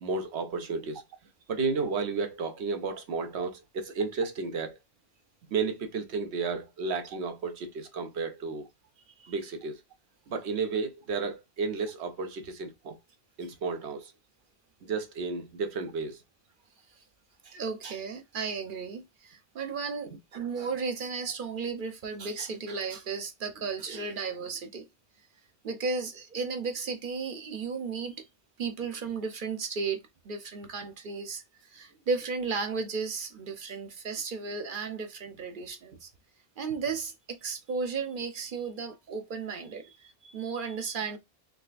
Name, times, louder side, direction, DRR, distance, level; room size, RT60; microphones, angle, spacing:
voice 1, 0.0-1.0 1.5-4.8 5.5-8.7 9.3-9.8 10.3-13.0 13.4-14.1 14.8-16.2, right 4 dB, 80° right, 1.0 m, -32 dB
voice 2, 17.4-24.9 25.6-28.3 28.6-30.0 30.2-36.1 36.6-41.2, right 5 dB, 55° right, 0.8 m, -34 dB
3.8 x 3.2 x 2.4 m
omnidirectional pair, 1.1 m